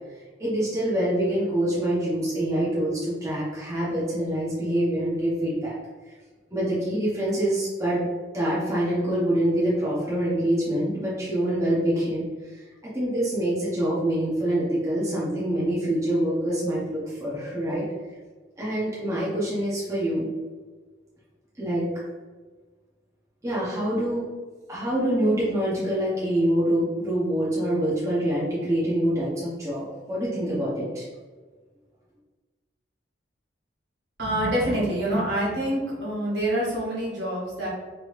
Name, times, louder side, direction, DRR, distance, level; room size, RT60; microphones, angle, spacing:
voice 1, 0.1-5.7 6.0-6.1 6.5-8.1 8.3-12.7 12.9-17.8 18.6-20.3 21.6-21.8 23.4-24.3 24.7-31.1, right 1 dB, 15° right, -8 dB, 0.8 m, -25 dB
voice 2, 34.2-37.7, right 1 dB, 65° right, -6 dB, 1.3 m, -26 dB
3.0 x 3.0 x 3.1 m, 1.4 s
head